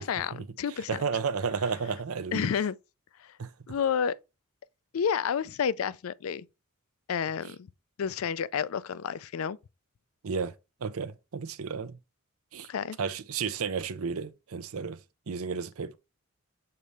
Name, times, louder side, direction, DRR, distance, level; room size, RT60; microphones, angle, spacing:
voice 1, 0.0-1.0 2.3-2.8 3.2-3.3 3.7-4.1 4.9-6.5 7.1-7.7 8.0-9.6 12.7-13.0, left 7 dB, 75° left, 0.4 m, -30 dB
voice 2, 0.9-2.5 3.4-3.5 7.4-7.5 10.2-10.5 10.8-12.0 12.5-12.7 13.0-15.0 15.3-16.0, right 5 dB, 80° right, 0.6 m, -32 dB
6.7 x 4.1 x 3.4 m
head